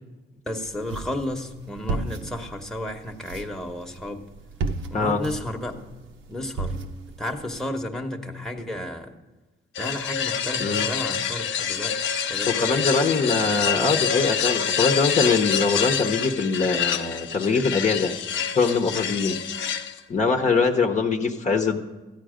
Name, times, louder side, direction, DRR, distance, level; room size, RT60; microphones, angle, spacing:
voice 1, 0.5-4.2 4.9-5.7 6.3-6.8 7.2-9.2 9.8-12.0 12.3-12.8, left 1 dB, 5° left, 2 dB, 1.1 m, -32 dB
sound 1, 0.6-7.6, right 3 dB, 70° right, 0.9 m, -35 dB
sound 2, 9.7-20.0, left 8 dB, 75° left, 0.7 m, -27 dB
voice 2, 12.4-18.1 18.5-19.4 20.1-21.8, left 4 dB, 35° left, 2 dB, 0.9 m, -22 dB
13.5 x 9.1 x 5.1 m, 1.1 s
cardioid pair, 90°, 20 cm